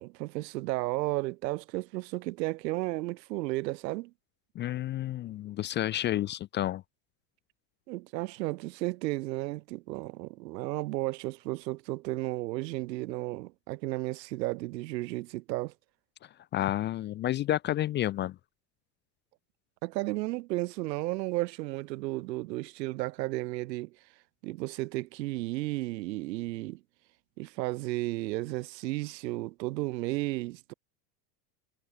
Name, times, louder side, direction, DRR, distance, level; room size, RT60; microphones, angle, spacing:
voice 1, 0.0-4.1 7.9-15.7 19.8-24.0 24.4-26.8 27.4-30.7, right 19 dB, 85° right, 2.5 m, -33 dB
voice 2, 4.6-6.8 16.5-18.4, left 13 dB, 25° left, 0.4 m, -30 dB
supercardioid pair, 145°, 49 cm